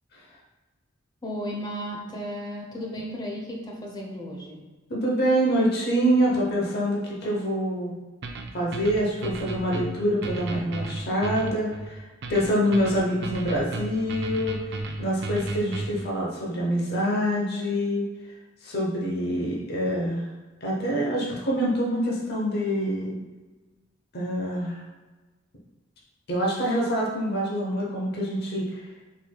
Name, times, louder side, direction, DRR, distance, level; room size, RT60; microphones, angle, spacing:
voice 1, 1.2-4.6, equal, 20° left, 0 dB, 0.7 m, -34 dB
voice 2, 4.9-7.9 8.5-14.6 15.0-18.0 18.6-20.2 20.6-23.2 24.1-24.8 26.3-28.8, equal, 55° left, -3 dB, 0.9 m, -26 dB
sound 1, 8.2-16.1, right 2 dB, 60° right, 0.5 m, -34 dB
4.6 x 4.1 x 2.3 m, 1.2 s
head